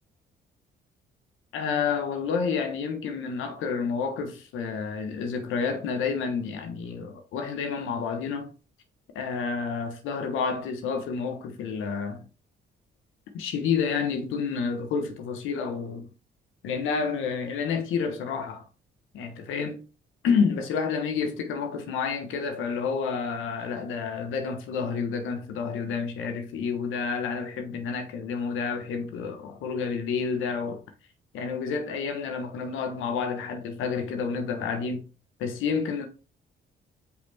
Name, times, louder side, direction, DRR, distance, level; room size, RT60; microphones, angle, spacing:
voice 1, 1.5-8.5 9.1-12.2 13.3-16.1 16.6-18.6 19.1-19.8 20.2-30.8 31.3-35.1 35.4-36.1, left 5 dB, 90° left, 1.2 m, -29 dB
5.7 x 4.3 x 4.3 m
cardioid pair, 90°, 20 cm